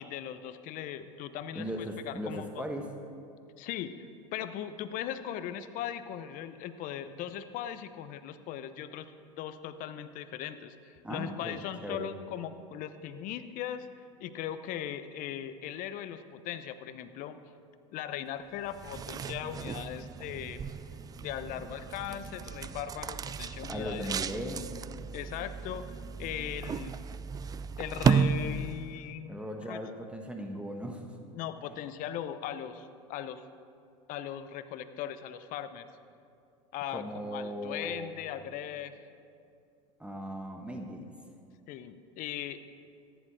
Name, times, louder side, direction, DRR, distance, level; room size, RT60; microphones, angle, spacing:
voice 1, 0.0-2.7 3.6-4.0 4.3-13.9 14.2-17.4 17.9-20.6 21.2-24.1 25.1-27.0 27.8-29.8 31.3-33.4 34.1-35.9 36.7-39.0 41.7-42.6, left 10 dB, 55° left, 11 dB, 0.8 m, -39 dB
voice 2, 1.5-2.9 11.0-12.1 23.7-24.7 29.2-31.0 36.9-38.1 40.0-41.0, equal, 5° right, 3 dB, 1.2 m, -38 dB
sound 1, 18.6-29.0, right 6 dB, 20° right, 0.4 m, -34 dB
14.0 x 10.5 x 4.8 m, 2.4 s
hypercardioid pair, 90°, 17 cm